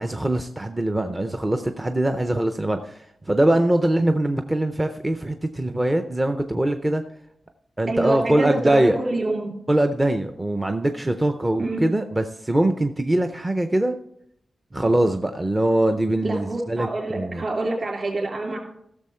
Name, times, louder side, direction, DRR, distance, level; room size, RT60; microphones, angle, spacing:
voice 1, 0.0-7.0 7.8-9.0 9.7-13.9 14.7-17.4, right 1 dB, 15° right, 7 dB, 0.5 m, -22 dB
voice 2, 7.9-9.5 11.6-11.9 16.2-18.6, right 2 dB, 35° right, 0 dB, 3.3 m, -26 dB
15.5 x 6.9 x 4.3 m, 0.74 s
wide cardioid pair, 175°, 0 cm